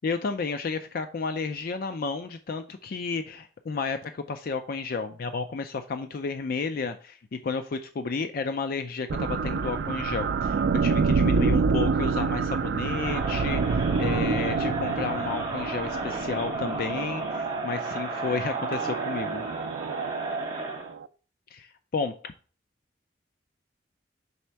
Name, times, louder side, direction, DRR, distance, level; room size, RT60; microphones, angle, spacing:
voice 1, 0.0-19.5 21.5-22.3, left 4 dB, 55° left, 8 dB, 0.4 m, -32 dB
sound 1, 9.1-21.1, right 5 dB, 75° right, 0.4 m, -28 dB
Crowd, 12.8-20.9, right 2 dB, 25° right, 1.5 m, -34 dB
5.5 x 4.2 x 4.5 m, 0.40 s
head